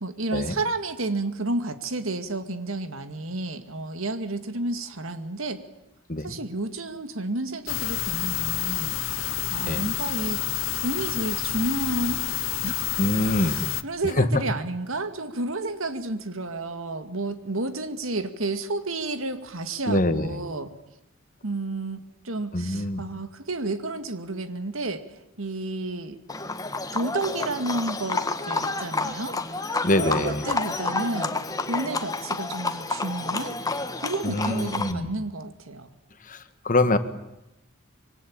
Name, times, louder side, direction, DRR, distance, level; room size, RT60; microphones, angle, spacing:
voice 1, 0.0-5.6 6.2-10.4 10.8-12.3 12.6-12.7 13.4-20.7 21.4-25.0 25.4-26.2 26.9-29.4 30.0-31.4 31.6-33.6 34.0-35.9, right 2 dB, 90° right, 9 dB, 2.3 m, -31 dB
sound 1, 7.7-13.8, left 12 dB, 75° left, 1.0 m, -29 dB
voice 2, 13.0-13.6 14.2-14.3 19.9-20.4 22.5-23.0 29.8-30.4 34.2-35.1 36.2-37.0, left 1 dB, 40° left, 10 dB, 1.8 m, -24 dB
Livestock farm animals working animals, 26.3-34.9, left 3 dB, 20° left, 1.5 m, -29 dB
26.0 x 23.0 x 8.8 m, 0.88 s
head